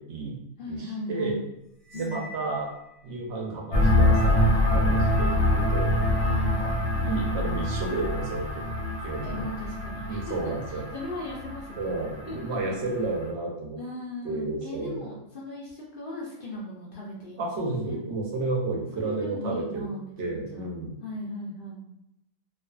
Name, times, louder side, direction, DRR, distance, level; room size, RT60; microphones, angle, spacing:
voice 1, 0.0-0.4 0.7-1.4 1.9-2.7 3.0-5.9 6.6-8.5 9.0-9.5 10.1-10.8 11.8-13.8 14.2-15.1 17.4-19.8 20.2-21.0, right 3 dB, 65° right, -1 dB, 0.8 m, -32 dB
voice 2, 0.6-1.4 1.9-2.3 6.1-6.8 9.2-10.4 10.7-11.9 12.3-12.6 13.8-18.0 18.9-20.7 21.0-21.8, left 2 dB, 65° left, -5 dB, 0.5 m, -38 dB
Cymbal, 1.8-3.2, left 1 dB, 25° right, 0.8 m, -46 dB
sound 1, 3.7-13.2, left 1 dB, 85° left, 1.0 m, -25 dB
2.4 x 2.4 x 2.3 m, 0.82 s
omnidirectional pair, 1.5 m